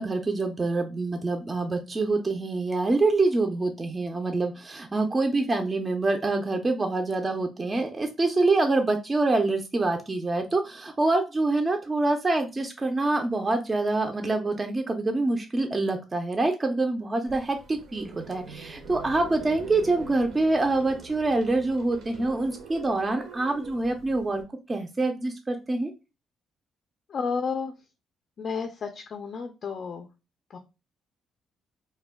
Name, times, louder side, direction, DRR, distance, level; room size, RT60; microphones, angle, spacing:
voice 1, 0.0-24.4 24.7-25.9, right 2 dB, 25° right, 4 dB, 0.4 m, -26 dB
sound 1, 17.3-24.4, right 4 dB, 80° right, 0.6 m, -44 dB
voice 2, 27.1-27.7 28.4-30.1 30.5-30.6, left 5 dB, 55° left, 5 dB, 0.3 m, -31 dB
2.2 x 2.1 x 3.3 m, 0.28 s
cardioid pair, 90°, 0 cm